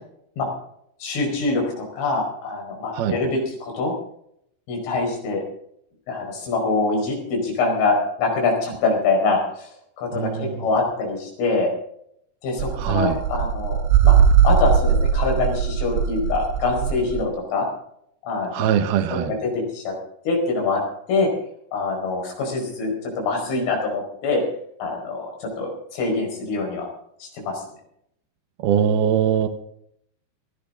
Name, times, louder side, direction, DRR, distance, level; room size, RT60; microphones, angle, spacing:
voice 1, 1.0-3.9 4.7-5.4 6.1-9.7 10.0-11.7 12.4-14.2 14.4-17.7 18.2-18.8 19.1-19.9 20.3-20.8 21.1-21.3 21.7-24.4 24.8-26.8 27.2-27.6, left 3 dB, 75° left, 1 dB, 7.4 m, -24 dB
voice 2, 10.1-10.5 12.8-13.2 18.5-19.3 28.6-29.5, right 9 dB, 65° right, 8 dB, 2.7 m, -21 dB
sound 1, 12.6-17.2, right 8 dB, 85° right, 3.7 m, -19 dB
19.5 x 16.5 x 3.7 m, 0.72 s
omnidirectional pair, 5.7 m